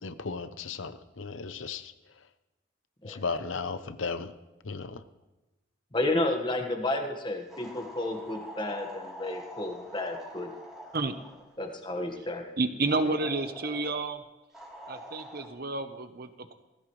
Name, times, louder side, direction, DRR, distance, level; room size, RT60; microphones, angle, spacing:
voice 1, 0.0-1.9 3.0-4.3 4.6-5.0, left 4 dB, 80° left, 12 dB, 0.8 m, -35 dB
voice 2, 5.9-10.5 11.6-12.5 13.0-13.1, left 2 dB, 25° left, 4 dB, 1.6 m, -31 dB
sound 1, 7.5-11.5 12.9-14.0 14.5-15.5, equal, 5° right, 3.4 m, -45 dB
voice 3, 12.6-14.2 14.9-16.5, right 3 dB, 50° right, 9 dB, 1.0 m, -30 dB
18.0 x 15.5 x 3.3 m, 1.1 s
head